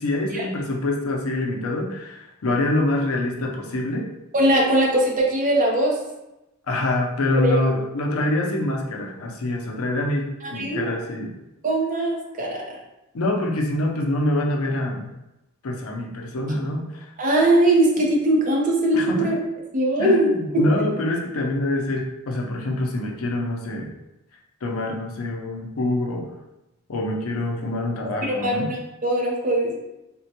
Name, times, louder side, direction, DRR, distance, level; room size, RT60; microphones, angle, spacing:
voice 1, 0.0-4.1 6.7-11.3 13.1-15.1 15.6-17.1 18.9-19.3 20.0-23.9 24.6-26.3 26.9-28.7, left 1 dB, 80° left, 0 dB, 0.6 m, -25 dB
voice 2, 4.3-5.9 7.4-7.6 10.4-10.9 11.6-12.6 17.2-19.4 19.7-20.7 28.2-29.8, right 1 dB, 40° right, -1 dB, 0.6 m, -20 dB
3.6 x 2.2 x 2.8 m, 0.94 s
head